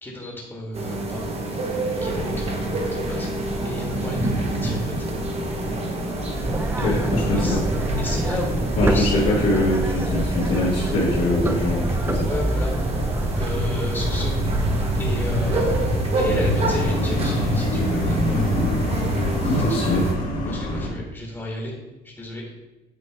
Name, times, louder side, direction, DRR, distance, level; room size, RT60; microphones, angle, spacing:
voice 1, 0.0-3.3 3.6-4.9 6.8-7.6 8.0-9.4 12.2-12.8 13.3-18.4 18.9-19.8 20.5-21.7 22.0-22.4, left 1 dB, 15° left, -2 dB, 1.5 m, -33 dB
sound 1, 0.7-20.1, right 2 dB, 35° right, 1.2 m, -29 dB
sound 2, 2.0-20.9, left 1 dB, 55° left, 1.9 m, -28 dB
sound 3, 6.3-15.8, right 1 dB, 15° right, 0.5 m, -26 dB
voice 2, 6.8-7.6 8.8-12.3 19.5-20.1, left 1 dB, 75° left, -8 dB, 1.8 m, -23 dB
8.7 x 3.1 x 4.6 m, 1.1 s
cardioid pair, 110°, 17 cm